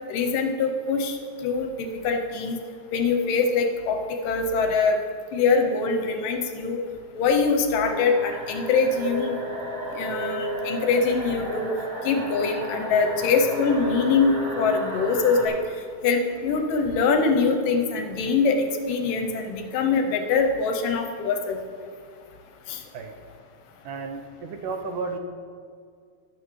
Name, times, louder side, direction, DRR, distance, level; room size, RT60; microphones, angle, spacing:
voice 1, 0.1-2.6 2.9-4.0 4.2-5.0 5.3-6.8 7.2-9.4 10.0-11.7 12.0-15.5 16.0-21.6 22.7-22.8, left 4 dB, 75° left, 4 dB, 2.2 m, -23 dB
sound 1, 7.9-15.5, right 1 dB, 40° right, 1.7 m, -32 dB
voice 2, 23.8-25.2, right 4 dB, 80° right, 4 dB, 2.0 m, -33 dB
13.5 x 11.0 x 3.2 m, 2.1 s
omnidirectional pair, 4.3 m